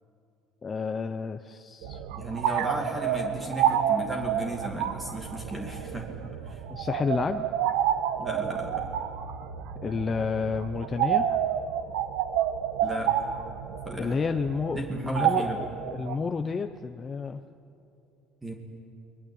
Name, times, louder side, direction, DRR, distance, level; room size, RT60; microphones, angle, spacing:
voice 1, 0.6-2.0 6.7-7.5 9.8-11.3 14.0-17.4, left 5 dB, 25° left, 7 dB, 0.8 m, -30 dB
sound 1, 1.8-16.2, right 10 dB, 90° right, 1.4 m, -29 dB
voice 2, 2.2-6.6 8.2-8.8 12.8-13.1 13.8-14.1 14.7-15.6 18.4-18.5, right 1 dB, 10° right, 1 dB, 2.6 m, -35 dB
29.5 x 22.0 x 8.6 m, 2.6 s
cardioid pair, 135°, 0 cm